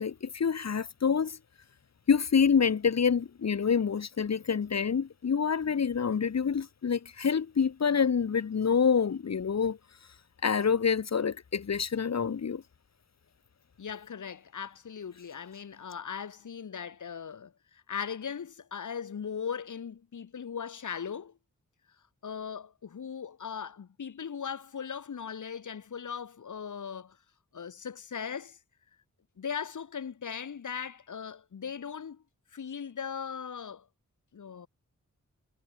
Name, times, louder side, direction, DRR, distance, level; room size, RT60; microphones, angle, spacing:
voice 1, 0.0-1.4 2.1-9.8 10.4-12.6, left 6 dB, 60° left, 1.8 m, -27 dB
voice 2, 13.8-21.3 22.2-27.2 27.5-28.6 29.4-32.2 32.5-33.9 34.3-34.7, left 7 dB, 85° left, 3.3 m, -39 dB
wide cardioid pair, 135°, 30 cm